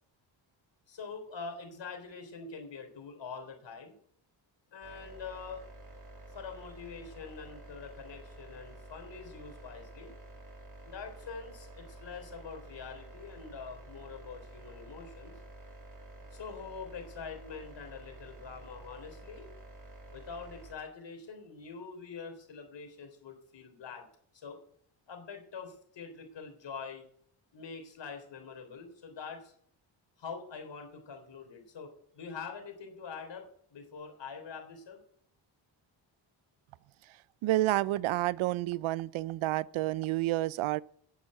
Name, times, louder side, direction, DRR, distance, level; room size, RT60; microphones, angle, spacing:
voice 1, 0.9-3.9 4.7-5.6 6.3-10.2 10.8-15.4 16.3-19.5 20.1-24.1 24.3-24.6 25.1-27.1 27.5-29.5 30.2-33.5 33.7-35.0, left 5 dB, 65° left, 3.6 m, -45 dB
sound 1, 4.8-20.7, right 1 dB, 40° right, 2.8 m, -50 dB
voice 2, 37.4-40.8, right 16 dB, 80° right, 0.5 m, -29 dB
10.5 x 7.3 x 7.7 m
cardioid pair, 75°, 47 cm